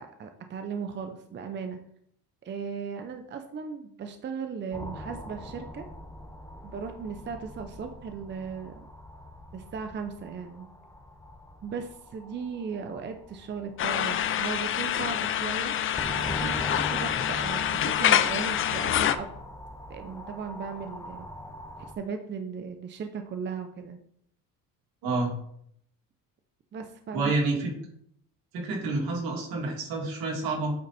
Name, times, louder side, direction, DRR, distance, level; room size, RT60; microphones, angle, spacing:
voice 1, 0.0-1.8 2.4-5.9 6.6-8.9 9.5-10.7 11.6-15.8 16.1-19.3 19.9-21.3 21.8-24.0 26.7-27.3, right 6 dB, 30° right, 6 dB, 0.6 m, -37 dB
sound 1, 4.7-21.9, left 1 dB, 10° left, 0.8 m, -42 dB
sound 2, 13.8-19.2, left 10 dB, 35° left, 0.4 m, -26 dB
voice 2, 25.0-25.3 27.1-27.7 28.5-30.7, right 3 dB, 75° right, -1 dB, 2.5 m, -28 dB
8.6 x 4.0 x 4.1 m, 0.69 s
cardioid pair, 115°, 36 cm